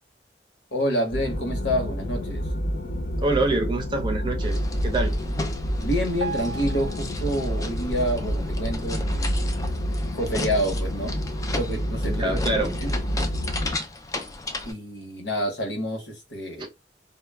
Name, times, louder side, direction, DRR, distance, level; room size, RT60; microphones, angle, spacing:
voice 1, 0.7-2.5 5.8-9.5 10.1-11.2 11.5-12.9 14.6-16.7, equal, 80° left, 0.9 m, -28 dB
sound 1, 1.1-13.8, equal, 55° left, 0.6 m, -28 dB
voice 2, 3.2-5.1 12.1-12.7, right 2 dB, 25° right, 0.6 m, -26 dB
sound 2, 4.4-14.7, left 2 dB, 20° left, 0.3 m, -35 dB
Piano, 6.2-9.3 9.8-10.0 10.3-10.4 11.1-11.2 11.8-11.9, right 4 dB, 85° right, 0.5 m, -38 dB
2.2 x 2.0 x 3.3 m
head